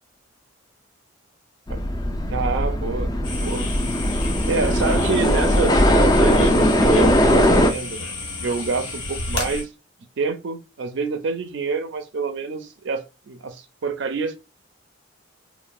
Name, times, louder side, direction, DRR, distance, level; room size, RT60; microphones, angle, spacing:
sound 1, 1.7-7.7, equal, 20° left, 0.3 m, -19 dB
voice 1, 2.3-3.7 4.5-8.1 8.4-9.7 10.2-14.3, right 4 dB, 60° right, 0.4 m, -27 dB
sound 2, 3.2-9.6, left 3 dB, 90° left, 1.1 m, -32 dB
2.9 x 2.1 x 2.3 m
head